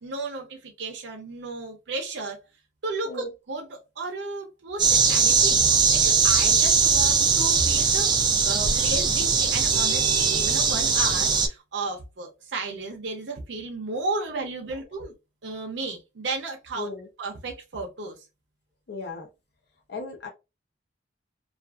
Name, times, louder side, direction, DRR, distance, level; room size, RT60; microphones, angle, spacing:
voice 1, 0.0-2.4 2.8-8.1 8.4-15.1 15.4-16.9 17.2-18.2, right 3 dB, 70° right, 0.6 m, -34 dB
sound 1, 4.8-11.5, right 5 dB, 25° right, 0.3 m, -20 dB
voice 2, 16.8-17.1 18.9-19.3 19.9-20.3, left 3 dB, 60° left, 0.6 m, -35 dB
2.4 x 2.3 x 2.3 m
head